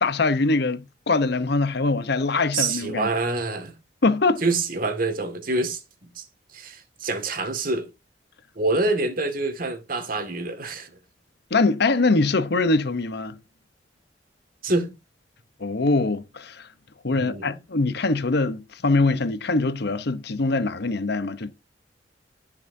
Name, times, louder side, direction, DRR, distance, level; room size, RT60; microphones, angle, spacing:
voice 1, 0.0-3.1 4.0-4.4 11.5-13.4 15.6-16.7 17.0-21.5, left 3 dB, 65° left, 0.9 m, -23 dB
voice 2, 2.5-3.7 4.4-6.3 6.5-7.9 8.6-10.9 14.6-14.9 17.1-17.6, right 3 dB, 55° right, 2.0 m, -26 dB
16.5 x 6.1 x 2.7 m
head